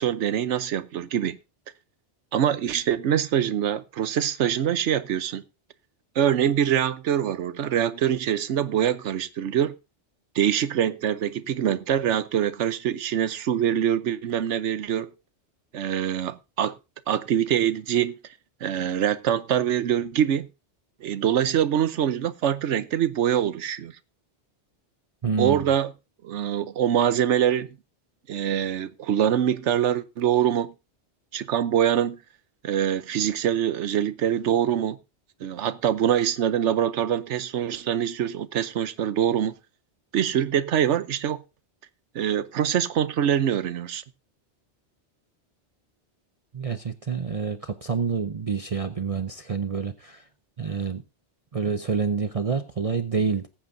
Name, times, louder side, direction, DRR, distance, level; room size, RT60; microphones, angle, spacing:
voice 1, 0.0-1.4 2.3-5.4 6.1-9.7 10.3-15.1 15.7-16.8 17.1-18.2 18.6-20.5 21.0-24.0 25.4-25.9 26.2-27.7 28.3-30.7 31.3-32.2 32.6-35.0 35.4-39.5 40.1-41.4 42.1-44.0, right 9 dB, 85° right, 1.1 m, -24 dB
voice 2, 25.2-25.6 46.5-50.2 50.6-51.0 51.5-53.5, right 5 dB, 40° right, 0.6 m, -27 dB
20.0 x 8.7 x 2.6 m
omnidirectional pair, 1.2 m